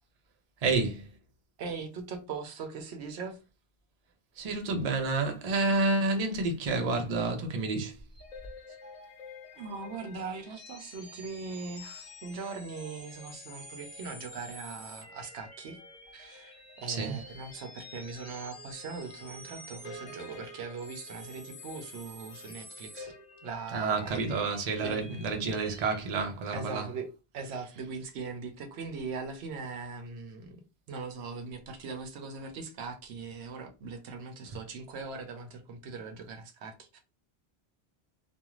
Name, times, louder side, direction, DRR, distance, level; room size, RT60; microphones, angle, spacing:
voice 1, 0.6-1.0 4.4-7.9 16.9-17.2 23.7-26.9, right 3 dB, 45° right, 0.6 m, -29 dB
voice 2, 1.6-3.4 8.7-8.8 9.5-15.8 16.1-23.1 23.4-24.4 24.8-25.0 26.5-27.1 27.3-30.6 30.9-37.0, right 4 dB, 80° right, 0.9 m, -40 dB
sound 1, 8.1-26.0, left 2 dB, 45° left, 1.0 m, -48 dB
2.4 x 2.3 x 3.0 m
omnidirectional pair, 1.1 m